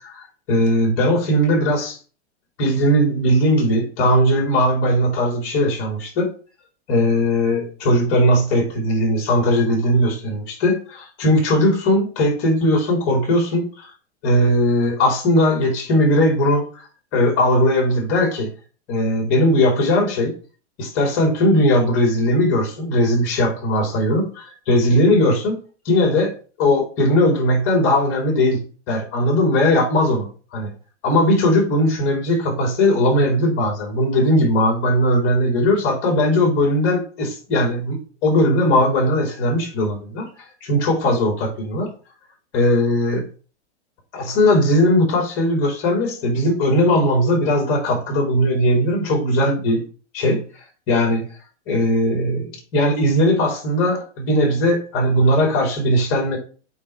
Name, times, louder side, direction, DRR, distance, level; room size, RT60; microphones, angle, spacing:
voice 1, 0.0-2.0 2.6-6.3 6.9-13.9 14.2-16.8 17.1-18.5 18.9-20.3 20.8-25.6 25.8-26.3 26.6-30.7 31.0-41.9 42.5-43.3 44.1-49.8 50.1-50.4 50.9-51.2 51.7-56.4, left 1 dB, 40° left, 0 dB, 3.2 m, -18 dB
8.6 x 3.1 x 4.3 m, 0.38 s
hypercardioid pair, 145°, 34 cm